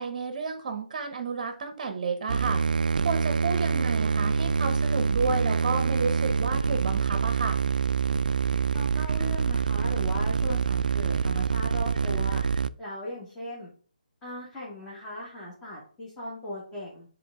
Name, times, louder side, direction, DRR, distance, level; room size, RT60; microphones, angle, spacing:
voice 1, 0.0-2.6 3.0-7.6, right 4 dB, 35° right, 7 dB, 0.9 m, -31 dB
sound 1, 2.3-12.7, right 5 dB, 65° right, 0.3 m, -26 dB
voice 2, 8.7-12.4 12.8-13.7 14.2-17.0, left 1 dB, 10° left, -7 dB, 1.7 m, -38 dB
7.6 x 3.7 x 3.6 m, 0.43 s
hypercardioid pair, 160°, 5 cm